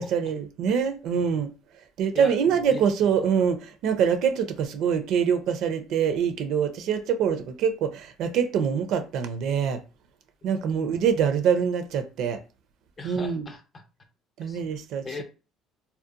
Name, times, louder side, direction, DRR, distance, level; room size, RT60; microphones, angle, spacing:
voice 1, 0.0-1.5 2.0-9.8 10.4-12.4 13.0-13.5 14.4-15.0, right 7 dB, 70° right, 0.4 m, -25 dB
voice 2, 2.1-3.2 10.6-11.0 13.0-13.6 14.4-14.6 15.0-15.2, left 3 dB, 35° left, 0.6 m, -39 dB
2.7 x 2.0 x 2.4 m
supercardioid pair, 75°, 0 cm